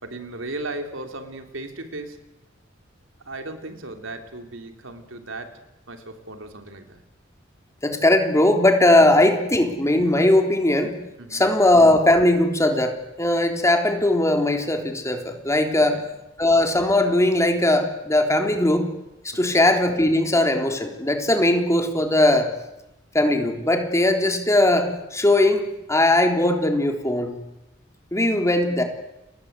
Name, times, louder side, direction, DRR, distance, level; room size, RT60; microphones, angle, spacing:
voice 1, 0.0-2.2 3.3-5.6 5.9-7.0 11.2-11.5 15.9-16.1 19.4-19.6, right 2 dB, 85° right, 6 dB, 3.6 m, -36 dB
voice 2, 7.8-11.0 11.3-16.0 16.4-18.9 19.2-22.5 23.1-27.4 28.1-28.8, left 1 dB, 15° left, 4 dB, 3.6 m, -19 dB
30.0 x 23.5 x 8.3 m, 0.93 s
head